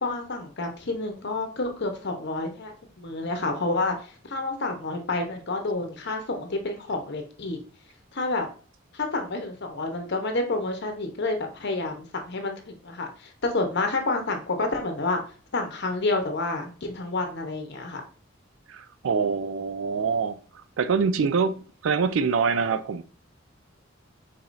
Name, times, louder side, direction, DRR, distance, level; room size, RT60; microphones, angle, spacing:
voice 1, 0.0-7.6 8.1-8.5 8.9-15.2 15.5-18.0, left 2 dB, 60° left, 0.9 m, -29 dB
voice 2, 18.7-23.0, right 5 dB, 75° right, 0.4 m, -25 dB
4.8 x 4.2 x 2.6 m
head